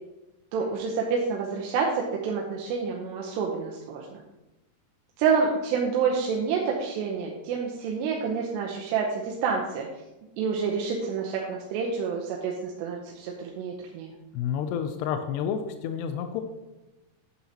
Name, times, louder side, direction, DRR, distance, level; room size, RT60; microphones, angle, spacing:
voice 1, 0.5-4.2 5.2-9.9 10.4-14.1, right 5 dB, 90° right, -1 dB, 3.1 m, -28 dB
voice 2, 14.3-16.4, left 8 dB, 90° left, 7 dB, 2.8 m, -30 dB
11.5 x 8.1 x 2.9 m, 1.0 s
omnidirectional pair, 4.8 m